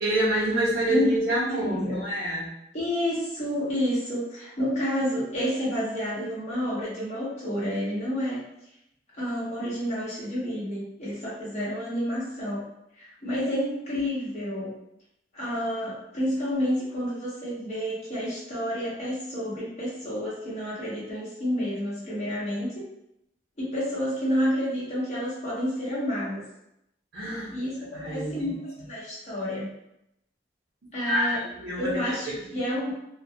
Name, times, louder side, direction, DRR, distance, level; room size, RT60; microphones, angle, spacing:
voice 1, 0.0-2.5 27.1-27.5 27.9-28.5 31.1-32.3, right 1 dB, 75° right, -8 dB, 0.7 m, -27 dB
voice 2, 1.6-2.0 2.7-8.4 9.1-12.7 13.0-14.7 15.3-22.8 23.6-26.4 27.5-29.7 30.9-31.4 31.8-32.9, equal, 40° left, -8 dB, 1.0 m, -29 dB
2.2 x 2.1 x 2.6 m, 0.82 s
head